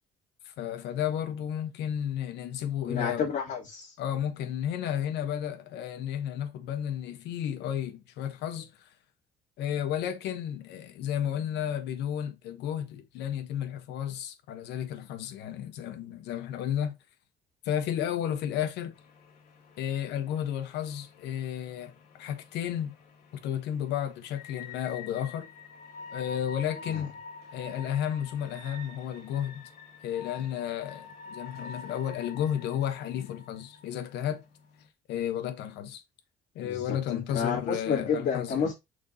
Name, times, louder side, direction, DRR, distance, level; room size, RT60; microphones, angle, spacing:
voice 1, 0.6-3.3 4.0-8.9 9.6-16.9 17.6-18.9 19.8-21.9 22.2-22.9 23.4-25.5 26.1-27.1 27.5-29.7 30.0-34.4 35.1-36.0 36.5-38.7, left 10 dB, 85° left, 1.2 m, -32 dB
voice 2, 2.9-3.9 26.9-27.1 36.6-38.7, left 6 dB, 50° left, 3.6 m, -30 dB
sound 1, 18.9-34.9, left 4 dB, 65° left, 2.7 m, -48 dB
6.2 x 5.4 x 2.9 m
cardioid pair, 110°, 17 cm